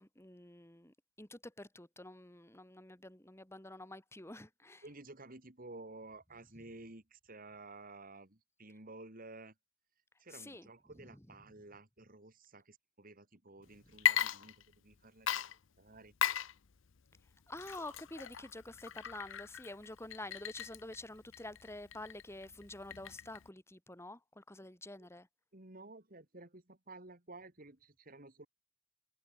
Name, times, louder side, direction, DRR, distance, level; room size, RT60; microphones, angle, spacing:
voice 1, 0.0-4.8 10.3-10.7 17.5-25.3, left 1 dB, 10° left, 2.3 m, -48 dB
voice 2, 4.8-9.5 10.2-16.1 25.0-25.1 25.5-28.5, right 2 dB, 40° right, 2.6 m, -53 dB
Water / Liquid, 13.9-14.9 15.3-23.5, left 9 dB, 60° left, 0.7 m, -37 dB
head